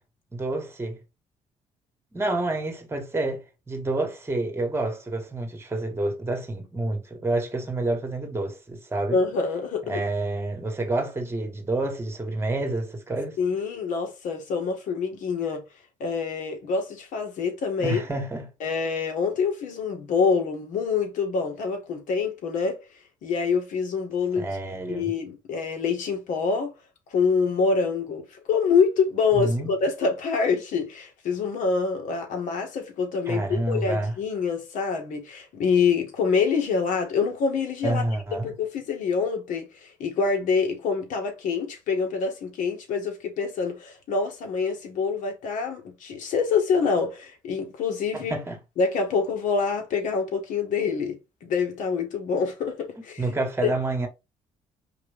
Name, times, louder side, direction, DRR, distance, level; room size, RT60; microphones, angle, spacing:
voice 1, 0.3-1.0 2.1-9.2 9.9-13.4 17.8-18.5 24.4-25.1 29.3-29.7 33.3-34.1 37.8-38.5 48.1-48.6 53.2-54.1, right 2 dB, 20° right, 1.7 m, -28 dB
voice 2, 9.1-10.0 13.4-15.6 16.0-18.0 18.6-22.8 23.2-24.5 24.9-26.7 27.1-38.0 38.4-48.3 48.8-53.2 53.6-53.7, left 5 dB, 75° left, 1.7 m, -26 dB
4.6 x 3.0 x 3.5 m
cardioid pair, 105°, 13 cm